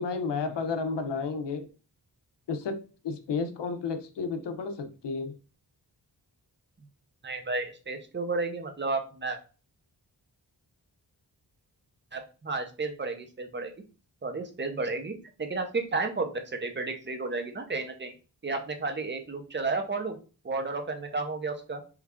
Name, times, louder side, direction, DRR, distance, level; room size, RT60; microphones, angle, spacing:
voice 1, 0.0-1.7 2.5-2.8 3.0-5.3, left 4 dB, 90° left, 8 dB, 0.6 m, -32 dB
voice 2, 7.2-9.4 12.1-13.7 14.2-18.1 18.4-20.2 20.4-21.8, right 3 dB, 30° right, 5 dB, 0.6 m, -32 dB
3.1 x 2.4 x 3.4 m, 0.35 s
wide cardioid pair, 105°, 41 cm